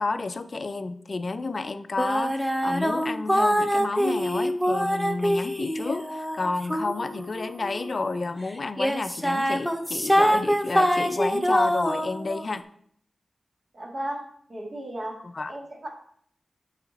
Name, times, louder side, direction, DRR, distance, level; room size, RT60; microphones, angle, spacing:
voice 1, 0.0-12.6 15.2-15.5, left 3 dB, 45° left, 11 dB, 0.4 m, -31 dB
sound 1, 2.0-8.2 8.8-12.4, equal, ahead, 0.6 m, -25 dB
voice 2, 13.7-14.2 14.5-15.2 15.5-15.9, right 1 dB, 45° right, -1 dB, 2.0 m, -34 dB
9.6 x 4.9 x 4.1 m, 0.63 s
wide cardioid pair, 145°, 0 cm